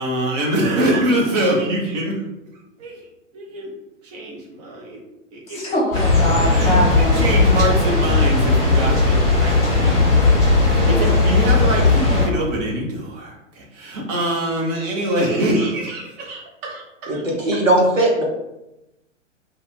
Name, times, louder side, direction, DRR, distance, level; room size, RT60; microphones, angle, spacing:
voice 1, 0.0-2.2 2.8-3.0 3.3-3.7 4.0-5.0 5.3-5.6 6.4-10.1 10.6-17.2 17.5-17.6, right 1 dB, 30° right, -2 dB, 0.7 m, -24 dB
voice 2, 5.5-7.3, equal, 30° left, -3 dB, 1.0 m, -22 dB
sound 1, 5.9-12.3, left 3 dB, 10° left, 0.5 m, -16 dB
voice 3, 17.1-18.2, right 1 dB, 80° right, -1 dB, 0.9 m, -18 dB
2.4 x 2.3 x 3.0 m, 0.93 s
figure-of-eight pair, 110°, 38 cm